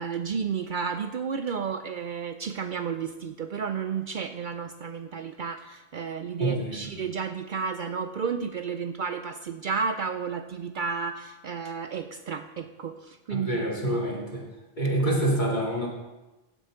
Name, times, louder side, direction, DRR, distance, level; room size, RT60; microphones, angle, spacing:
voice 1, 0.0-14.2 15.0-15.1, right 6 dB, 60° right, 8 dB, 0.6 m, -32 dB
voice 2, 6.4-6.8 13.3-14.4 14.8-15.9, right 1 dB, 45° left, -2 dB, 2.5 m, -26 dB
16.0 x 7.8 x 3.7 m, 1.0 s
omnidirectional pair, 1.1 m